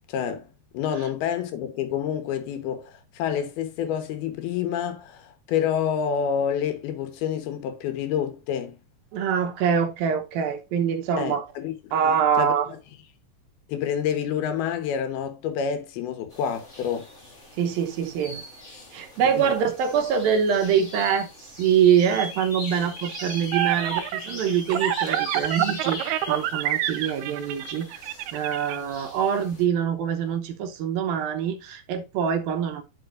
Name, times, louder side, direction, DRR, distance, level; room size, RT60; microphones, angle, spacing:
voice 1, 0.1-0.5 0.7-8.8 11.2-11.8 12.0-12.5 13.7-17.1 19.4-19.5, left 8 dB, 80° left, 3.1 m, -28 dB
voice 2, 9.1-11.5 11.9-12.7 17.6-18.4 18.9-28.0 28.3-32.8, right 8 dB, 75° right, 2.7 m, -24 dB
sound 1, 16.3-29.6, left 2 dB, 25° left, 1.6 m, -40 dB
sound 2, 23.0-28.8, right 13 dB, 90° right, 2.8 m, -27 dB
10.0 x 5.7 x 2.5 m
omnidirectional pair, 4.4 m